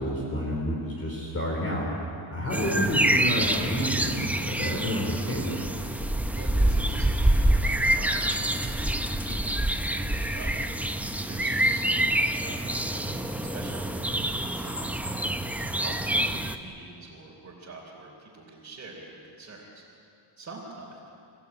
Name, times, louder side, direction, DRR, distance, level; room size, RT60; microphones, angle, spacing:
voice 1, 0.0-1.9 2.3-5.6, equal, 30° left, -2 dB, 3.6 m, -29 dB
sound 1, 2.5-16.6, right 1 dB, 5° right, 0.9 m, -26 dB
voice 2, 6.3-10.7 11.2-15.3 15.8-19.8 20.4-21.1, right 3 dB, 30° right, -5 dB, 3.8 m, -45 dB
30.0 x 16.5 x 9.0 m, 2.6 s
cardioid pair, 155°, 48 cm